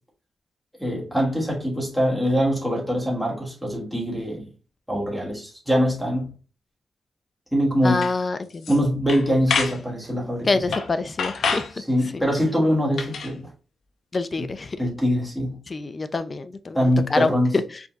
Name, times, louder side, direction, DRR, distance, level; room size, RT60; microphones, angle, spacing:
voice 1, 0.8-4.4 4.9-6.3 7.5-8.0 8.7-10.5 11.8-13.5 14.4-14.5 14.8-15.6 16.7-17.6, equal, ahead, 1.6 m, -23 dB
voice 2, 7.8-8.7 10.4-11.7 12.1-12.2 14.1-14.8 15.7-17.3 17.7-17.8, left 3 dB, 35° left, 0.5 m, -26 dB
sound 1, 8.0-8.1 8.5-8.8 9.1-9.8 10.7-10.9 11.2-11.7 12.9-13.3, left 5 dB, 85° left, 0.7 m, -26 dB
4.9 x 3.9 x 2.4 m
wide cardioid pair, 110°, 0 cm